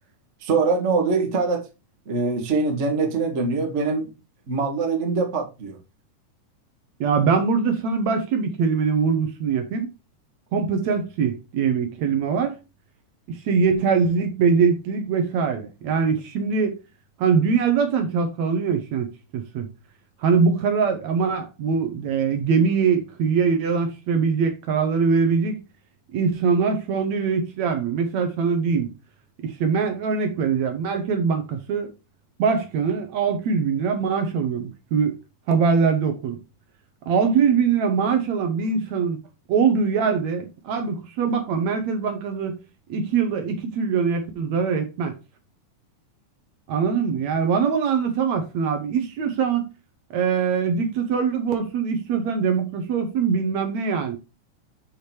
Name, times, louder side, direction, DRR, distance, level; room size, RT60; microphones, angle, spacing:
voice 1, 0.4-1.6 2.1-4.1 4.5-5.8, right 4 dB, 35° right, 1.1 m, -23 dB
voice 2, 7.0-9.9 10.5-12.6 13.3-16.8 17.2-19.7 20.2-25.6 26.1-28.9 29.4-31.9 32.4-35.2 35.5-36.4 37.1-39.2 39.5-42.6 42.9-45.1 46.7-49.7 50.1-54.2, right 5 dB, 65° right, 2.2 m, -22 dB
6.8 x 5.1 x 4.4 m
omnidirectional pair, 3.7 m